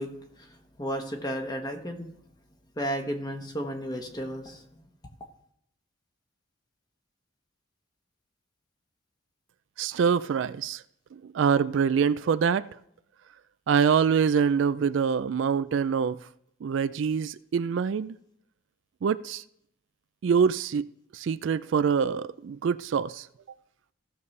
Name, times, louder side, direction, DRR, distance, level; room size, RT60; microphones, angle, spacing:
voice 1, 0.0-2.1 2.8-4.6, equal, 20° left, 1.1 m, -33 dB
voice 2, 9.8-10.8 11.1-12.7 13.7-16.2 16.6-18.2 19.0-19.4 20.2-20.9 21.1-23.3, right 6 dB, 65° right, 0.3 m, -25 dB
15.5 x 6.9 x 3.3 m
head